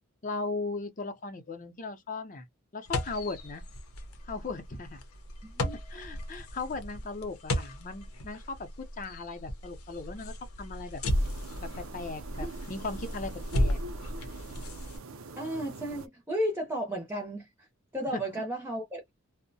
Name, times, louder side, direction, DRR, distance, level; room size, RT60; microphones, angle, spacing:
voice 1, 0.2-2.4 2.7-3.6 4.2-5.0 5.9-11.0 11.6-13.8 18.1-18.2, left 3 dB, 35° left, 0.6 m, -38 dB
sound 1, 2.9-15.0, left 1 dB, 85° left, 0.7 m, -35 dB
voice 2, 5.4-5.8 12.4-12.6 15.4-17.7 17.9-19.0, equal, 10° right, 0.6 m, -34 dB
sound 2, 11.1-16.1, right 4 dB, 70° right, 0.5 m, -44 dB
2.6 x 2.1 x 2.6 m
head